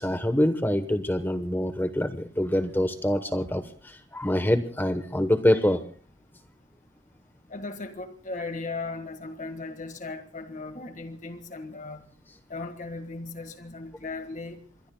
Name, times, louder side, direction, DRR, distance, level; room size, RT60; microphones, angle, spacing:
voice 1, 0.0-5.8, left 1 dB, 10° left, 9 dB, 0.9 m, -25 dB
voice 2, 7.5-12.1 12.5-14.6, left 3 dB, 40° left, 8 dB, 1.6 m, -37 dB
28.0 x 23.0 x 2.2 m, 0.43 s
head